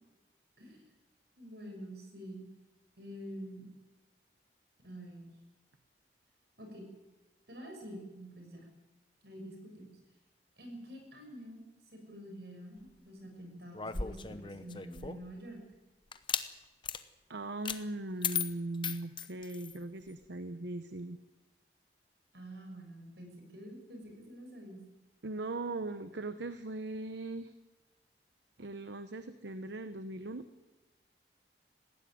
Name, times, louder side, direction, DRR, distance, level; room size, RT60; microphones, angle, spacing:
voice 1, 1.4-2.4 3.0-3.7 4.8-5.3 6.6-6.9 7.5-8.7 9.2-9.9 10.6-11.6 11.9-15.6 22.3-24.8, equal, 70° right, 3 dB, 6.7 m, -47 dB
sound 1, 13.7-15.3 16.1-16.5 16.8-17.0 17.6-17.8 18.2-19.8, left 7 dB, 25° left, 0.9 m, -36 dB
voice 2, 17.3-21.2 25.2-27.5 28.6-30.5, right 2 dB, 85° right, 11 dB, 0.9 m, -39 dB
19.0 x 15.5 x 9.6 m, 1.1 s
head